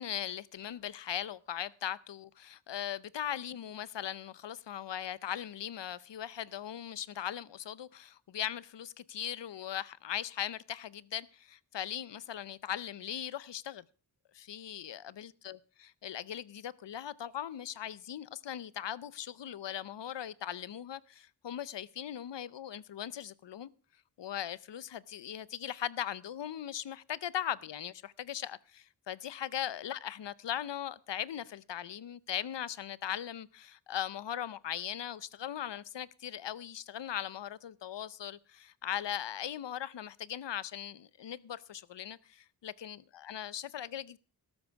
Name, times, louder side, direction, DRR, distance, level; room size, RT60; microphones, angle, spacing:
voice 1, 0.0-13.8 14.3-15.6 16.0-23.7 24.2-44.2, left 10 dB, 90° left, 0.6 m, -39 dB
13.5 x 12.5 x 4.6 m
wide cardioid pair, 80°, 41 cm